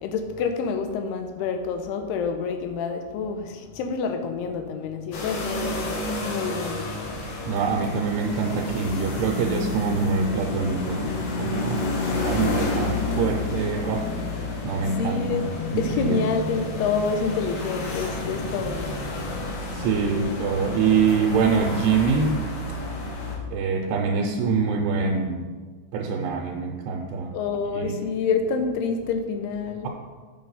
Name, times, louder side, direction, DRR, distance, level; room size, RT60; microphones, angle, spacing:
voice 1, 0.0-6.8 15.0-15.4 15.7-19.0 19.3-19.9 27.3-29.9, left 5 dB, 80° left, 6 dB, 2.7 m, -28 dB
sound 1, 5.1-23.4, left 2 dB, 65° left, 2.6 m, -30 dB
voice 2, 7.2-11.8 12.1-14.1 14.6-15.5 15.7-16.2 18.6-18.7 19.7-22.4 23.5-25.5 25.9-27.3 27.7-28.0, right 5 dB, 90° right, 1 dB, 2.8 m, -25 dB
7.0 x 6.0 x 5.5 m, 1.5 s
omnidirectional pair, 4.7 m